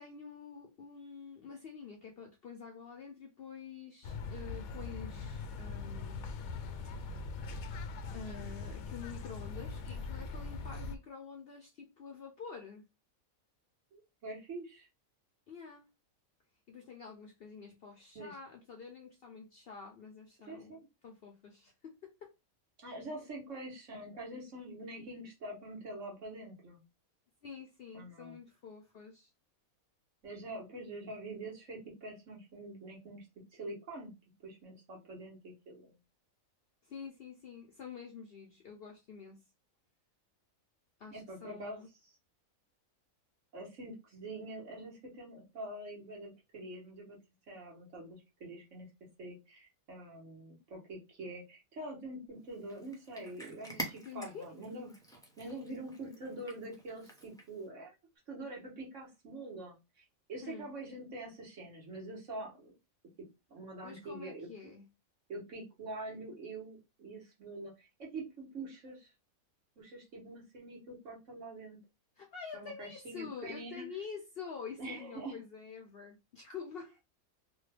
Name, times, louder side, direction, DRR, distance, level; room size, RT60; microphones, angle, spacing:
voice 1, 0.0-6.3 8.1-12.8 15.5-15.9 16.7-20.7 21.0-21.7 22.0-22.3 27.4-29.3 36.9-39.4 41.0-41.9 54.0-54.5 60.4-60.7 63.8-64.9 72.2-77.0, left 6 dB, 60° left, 0.6 m, -47 dB
sound 1, 4.0-11.0, left 4 dB, 80° left, 1.0 m, -41 dB
voice 2, 13.9-14.9 18.1-18.3 20.5-20.9 22.8-26.8 27.9-28.4 30.2-33.3 33.5-34.1 34.4-35.9 41.1-41.9 43.5-47.2 47.5-48.9 49.2-55.0 55.4-57.9 58.3-62.7 63.5-64.5 65.3-69.1 69.8-71.8 72.5-73.8 74.8-75.4, right 2 dB, 60° right, 1.5 m, -45 dB
Cat, 52.5-57.7, equal, 5° left, 0.4 m, -47 dB
3.1 x 2.2 x 3.3 m
omnidirectional pair, 1.5 m